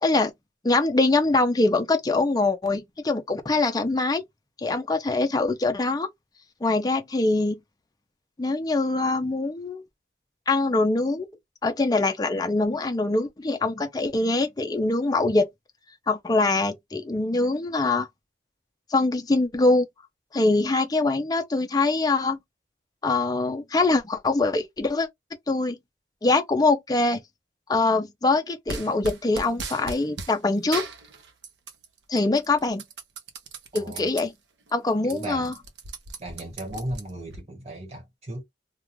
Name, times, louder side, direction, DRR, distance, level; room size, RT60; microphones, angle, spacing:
voice 1, 0.6-4.2 4.6-6.1 6.6-7.6 8.4-9.8 10.5-11.3 11.6-15.5 16.1-18.1 18.9-19.9 20.3-22.4 23.0-25.1 25.5-25.8 26.2-27.2 27.7-30.8 32.1-32.8 33.7-34.3 34.7-35.5, left 3 dB, 20° left, 0.4 m, -23 dB
sound 1, 28.7-30.4 30.7-31.9 32.2-34.2 34.7-34.8 35.0-37.4, right 4 dB, 80° right, 0.6 m, -37 dB
voice 2, 33.7-34.1 35.0-35.6 36.2-38.4, right 1 dB, 35° right, 1.3 m, -36 dB
2.3 x 2.3 x 3.1 m
head